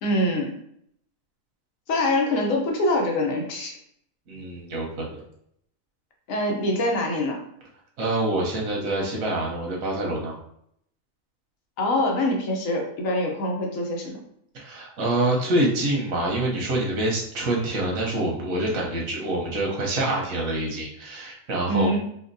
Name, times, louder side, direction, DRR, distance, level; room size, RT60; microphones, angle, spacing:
voice 1, 0.0-0.5 1.9-3.7 6.3-7.4 11.8-14.2 21.7-22.0, left 1 dB, 80° left, 0 dB, 1.2 m, -24 dB
voice 2, 4.3-5.2 8.0-10.3 14.5-22.0, right 1 dB, 90° right, -2 dB, 1.4 m, -26 dB
4.3 x 2.3 x 2.6 m, 0.70 s
omnidirectional pair, 1.4 m